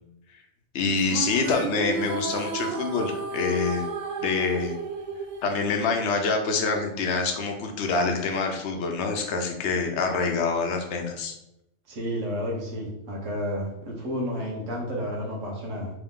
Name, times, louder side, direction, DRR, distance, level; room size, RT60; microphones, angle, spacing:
voice 1, 0.7-3.8 4.2-4.7 5.4-11.3, left 4 dB, 70° left, 3 dB, 1.0 m, -26 dB
sound 1, 1.0-6.5, right 4 dB, 60° right, 0.5 m, -33 dB
voice 2, 11.9-15.9, equal, 90° right, -2 dB, 1.4 m, -31 dB
3.6 x 3.0 x 3.6 m, 0.86 s
omnidirectional pair, 1.2 m